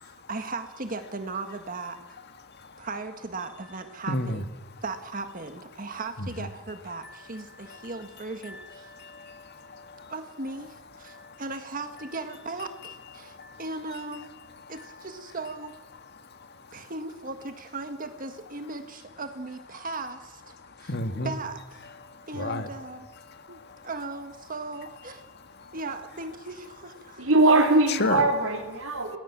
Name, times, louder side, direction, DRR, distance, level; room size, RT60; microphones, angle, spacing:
voice 1, 0.0-2.0 2.8-4.4 4.8-8.9 10.1-14.3 14.7-15.7 16.7-20.5 20.8-21.8 22.3-23.1 23.8-25.2 25.7-27.3, right 3 dB, 40° right, 7 dB, 1.7 m, -37 dB
voice 2, 4.1-4.4 7.7-7.9 8.5-8.6 9.0-10.1 11.1-11.4 13.2-13.6 16.3-16.5 20.8-21.3 22.0-22.7 23.3-23.9 25.6-25.7 28.0-28.2, left 2 dB, 55° left, 8 dB, 2.0 m, -33 dB
voice 3, 27.2-29.2, right 2 dB, 85° right, -3 dB, 3.5 m, -21 dB
29.0 x 19.5 x 7.4 m, 1.2 s
head